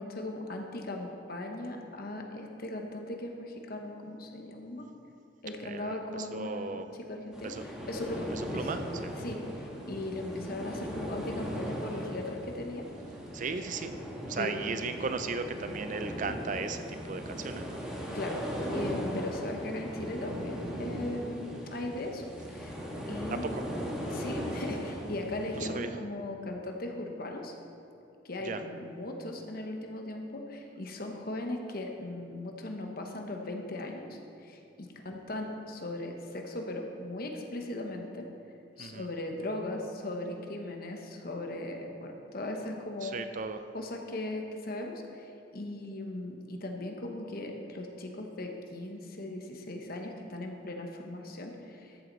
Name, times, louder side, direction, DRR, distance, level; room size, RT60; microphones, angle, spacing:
voice 1, 0.0-4.9 5.4-6.8 7.1-8.7 9.2-12.9 14.4-14.6 18.1-18.4 18.7-22.8 23.1-23.5 24.1-27.6 28.2-38.2 38.8-43.2 43.7-52.0, left 1 dB, 50° left, 3 dB, 1.1 m, -38 dB
voice 2, 5.6-6.8 7.4-7.6 8.3-9.1 13.3-13.9 14.3-17.8 23.3-23.6 25.5-25.9 28.4-28.6 38.8-39.1 43.0-43.6, right 4 dB, 40° right, 9 dB, 0.5 m, -36 dB
sound 1, 7.3-25.7, equal, 5° right, 1.5 m, -38 dB
13.5 x 7.8 x 4.0 m, 2.7 s
head